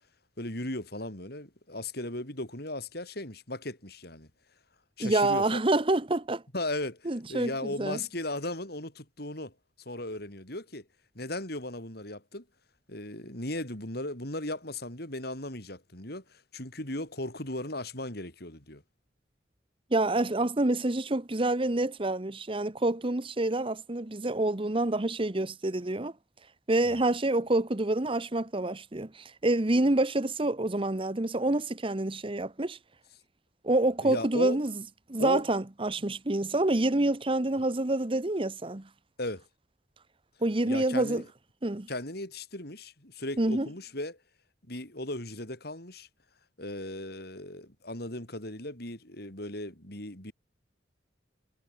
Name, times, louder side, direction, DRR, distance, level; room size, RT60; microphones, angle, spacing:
voice 1, 0.4-4.3 5.0-5.6 6.5-9.5 9.8-10.9 11.1-12.4 12.9-18.8 26.8-27.0 34.0-34.6 35.2-35.4 39.2-39.4 40.6-41.3 41.9-44.2 44.7-46.1 46.6-50.3, left 1 dB, 55° left, 7.6 m, -37 dB
voice 2, 5.0-6.4 7.1-7.5 7.8-8.0 19.9-26.1 26.7-32.8 33.6-34.7 35.1-38.9 40.4-41.2 41.6-41.9 43.4-43.7, right 2 dB, 30° right, 1.0 m, -27 dB
head